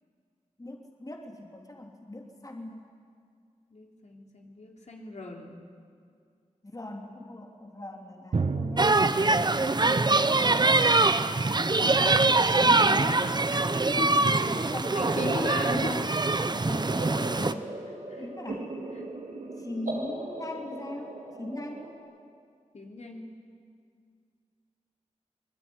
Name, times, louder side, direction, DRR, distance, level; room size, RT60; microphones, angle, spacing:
voice 1, 0.6-2.9 6.7-8.9 13.1-13.4 13.9-15.5 16.6-17.7 18.2-18.7 19.6-21.9, left 1 dB, 25° left, 2 dB, 3.0 m, -40 dB
voice 2, 3.7-5.6 10.2-10.8 12.5-13.2 13.5-13.7 14.0-14.5 14.9-16.2 18.1-18.6 18.9-19.0 22.7-23.4, left 3 dB, 60° left, 0 dB, 3.6 m, -38 dB
Drum, 8.3-11.8, right 4 dB, 55° right, 1.2 m, -34 dB
sound 1, 8.8-17.5, right 3 dB, 35° right, 1.0 m, -23 dB
sound 2, 16.9-21.9, right 2 dB, 90° right, 4.2 m, -38 dB
24.5 x 20.0 x 9.8 m, 2.2 s
cardioid pair, 60°, 13 cm